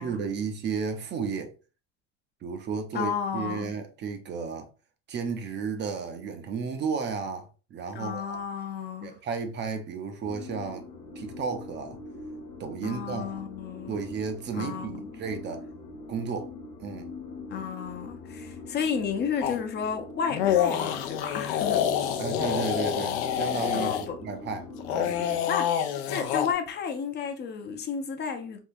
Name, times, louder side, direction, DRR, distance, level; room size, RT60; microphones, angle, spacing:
voice 1, 0.0-1.5 2.4-4.7 5.1-8.4 9.0-10.9 11.2-12.0 12.6-13.5 13.9-15.6 16.1-16.5 16.8-17.1 22.2-25.5, right 5 dB, 35° right, 0.5 m, -33 dB
voice 2, 2.9-3.7 7.9-9.2 12.8-14.0 14.5-15.2 17.5-21.9 23.7-24.2 25.5-28.6, left 7 dB, 35° left, 0.5 m, -32 dB
sound 1, 10.2-25.3, left 3 dB, 55° left, 1.1 m, -43 dB
sound 2, 19.4-19.6 20.3-24.0 24.8-26.5, left 9 dB, 90° left, 0.6 m, -27 dB
3.6 x 2.2 x 2.6 m
supercardioid pair, 115°, 30 cm